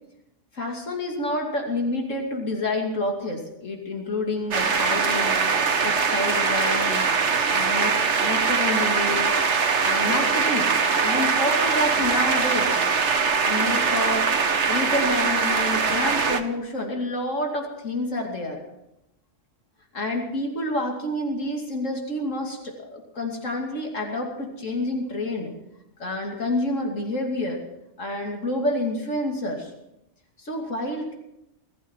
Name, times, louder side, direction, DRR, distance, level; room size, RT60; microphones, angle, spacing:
voice 1, 0.5-5.4 5.8-7.0 7.5-9.3 9.8-10.7 11.0-12.7 13.4-14.3 14.7-18.6 19.9-25.5 26.0-27.6 28.0-29.7 30.4-31.1, left 1 dB, 85° left, 1 dB, 3.1 m, -28 dB
sound 1, 4.5-16.4, right 5 dB, 65° right, 1.5 m, -22 dB
21.5 x 14.0 x 4.6 m, 0.86 s
omnidirectional pair, 1.3 m